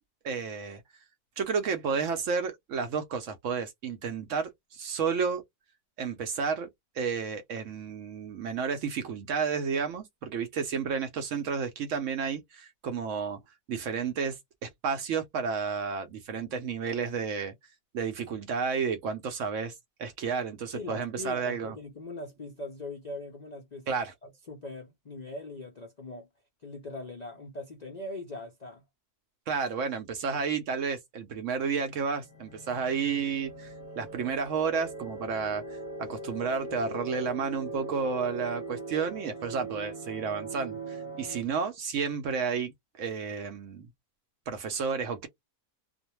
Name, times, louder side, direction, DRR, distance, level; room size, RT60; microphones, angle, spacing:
voice 1, 0.2-0.8 1.4-5.4 6.0-6.7 6.9-13.4 13.7-17.5 17.9-21.7 23.9-24.1 29.5-43.9 44.5-45.3, right 5 dB, 65° right, 0.8 m, -31 dB
voice 2, 20.7-24.0 24.5-26.3 26.6-28.8, left 2 dB, 80° left, 0.3 m, -41 dB
sound 1, 31.9-41.4, right 2 dB, 25° left, 0.8 m, -40 dB
2.5 x 2.2 x 2.9 m
omnidirectional pair, 1.6 m